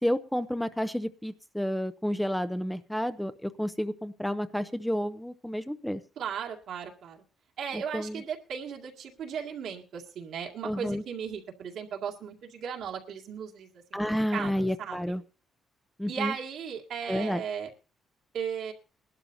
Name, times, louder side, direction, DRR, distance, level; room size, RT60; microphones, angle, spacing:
voice 1, 0.0-6.0 7.7-8.2 10.6-11.0 13.9-15.2 16.0-16.3 17.1-17.4, equal, 5° left, 11 dB, 0.6 m, -30 dB
voice 2, 6.2-7.2 7.6-14.0 14.3-15.0 16.1-17.7 18.3-18.7, right 7 dB, 75° right, 1 dB, 2.2 m, -36 dB
22.0 x 12.0 x 2.7 m, 0.31 s
cardioid pair, 90°, 0 cm